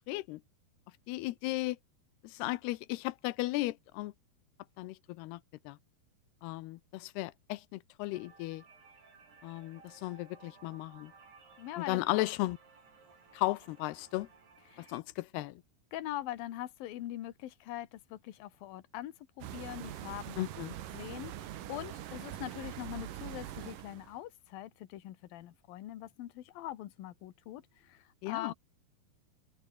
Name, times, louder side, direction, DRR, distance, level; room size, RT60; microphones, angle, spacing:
voice 1, 0.1-0.4 1.1-1.8 2.2-4.1 4.8-5.4 5.7-5.8 6.4-8.6 9.4-11.1 11.8-12.6 13.3-14.3 14.9-15.6 20.4-20.8 28.2-28.5, left 19 dB, 90° left, 2.8 m, -35 dB
sound 1, 8.1-15.0, right 5 dB, 85° right, 8.5 m, -59 dB
voice 2, 11.6-12.0 14.7-14.9 15.9-20.4 20.9-28.5, left 13 dB, 70° left, 3.1 m, -43 dB
sound 2, 19.4-24.2, right 12 dB, 65° right, 2.8 m, -43 dB
omnidirectional pair, 4.5 m